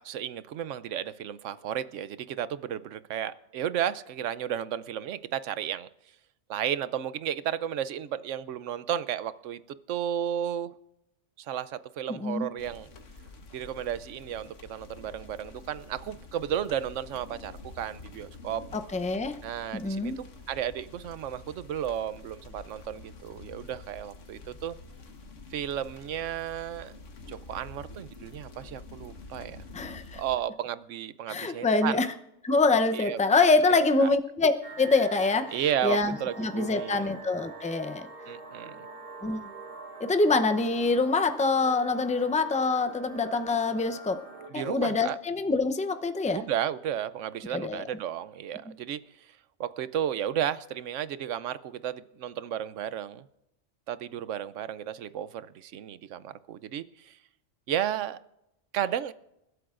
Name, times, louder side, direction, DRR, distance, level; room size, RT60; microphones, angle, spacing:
voice 1, 0.0-5.9 6.5-9.6 9.9-10.7 11.4-12.9 13.5-18.6 19.4-24.8 25.5-26.9 27.3-29.6 30.1-32.0 32.9-33.4 33.7-34.1 35.5-37.1 38.3-38.9 44.5-45.2 46.3-49.3 49.6-53.2 53.9-57.2 57.7-58.2 58.7-59.1, right 10 dB, 85° right, 15 dB, 1.0 m, -33 dB
voice 2, 12.1-12.5 18.7-19.4 19.7-20.2 29.7-30.2 31.3-32.1 32.4-34.5 34.8-35.5 35.8-38.1 39.2-39.4 40.0-44.2 44.5-46.4 47.5-47.8, left 3 dB, 10° left, 8 dB, 0.5 m, -25 dB
sound 1, 12.6-30.4, left 3 dB, 85° left, 1.6 m, -48 dB
sound 2, 34.6-44.5, right 3 dB, 50° right, 2.1 m, -45 dB
28.5 x 12.5 x 2.5 m, 0.87 s
omnidirectional pair, 1.2 m